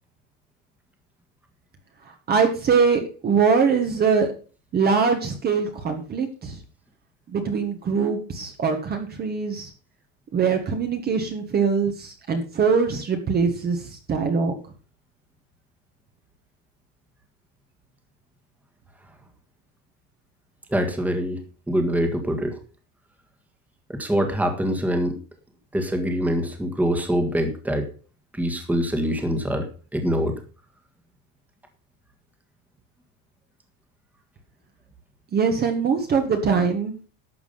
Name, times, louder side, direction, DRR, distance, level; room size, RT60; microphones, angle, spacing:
voice 1, 2.3-4.3 4.7-6.6 7.3-9.7 10.3-13.8 14.1-14.6 35.3-36.9, right 5 dB, 25° right, 5 dB, 1.5 m, -22 dB
voice 2, 20.7-21.4 21.7-22.6 23.9-25.2 25.7-27.9 28.3-29.7 29.9-30.3, equal, 5° right, 5 dB, 1.7 m, -24 dB
12.0 x 7.3 x 5.6 m, 0.37 s
cardioid pair, 170°, 36 cm